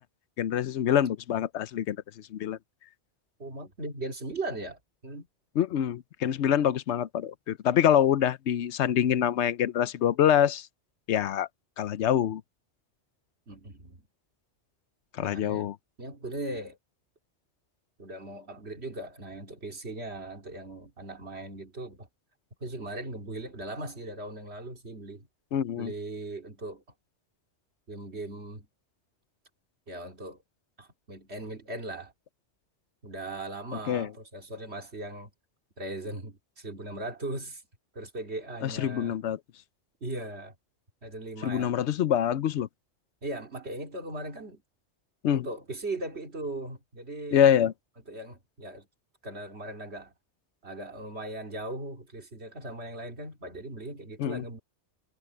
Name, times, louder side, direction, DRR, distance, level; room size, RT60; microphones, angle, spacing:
voice 1, 0.4-2.0 2.3-2.6 5.6-10.7 11.1-11.5 11.8-12.4 15.2-15.7 25.5-25.9 33.9-34.1 38.6-39.4 41.4-42.7 45.2-45.5 47.3-47.7 54.2-54.4, left 10 dB, 75° left, 0.9 m, -25 dB
voice 2, 3.4-5.3 13.5-14.1 15.2-15.7 16.0-16.8 18.0-22.1 22.6-25.3 25.8-26.8 27.9-28.7 29.9-30.4 30.8-32.1 33.0-35.3 35.8-37.6 37.9-39.2 40.0-40.5 41.0-41.7 43.2-44.6 45.3-47.4 48.1-48.9 49.2-50.1 50.6-54.6, right 2 dB, 65° right, 2.9 m, -38 dB
omnidirectional pair, 1.2 m